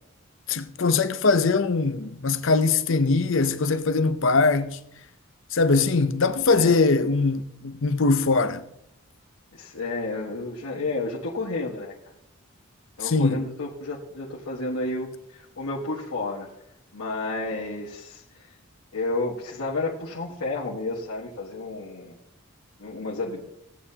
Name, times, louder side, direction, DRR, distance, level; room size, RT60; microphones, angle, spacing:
voice 1, 0.5-4.8 5.5-8.6 13.0-13.5, left 3 dB, 60° left, 0.6 m, -22 dB
voice 2, 9.5-11.9 13.0-16.5 16.9-18.2 18.9-22.1 22.8-23.4, left 2 dB, 85° left, 1.5 m, -31 dB
16.5 x 8.8 x 2.9 m
head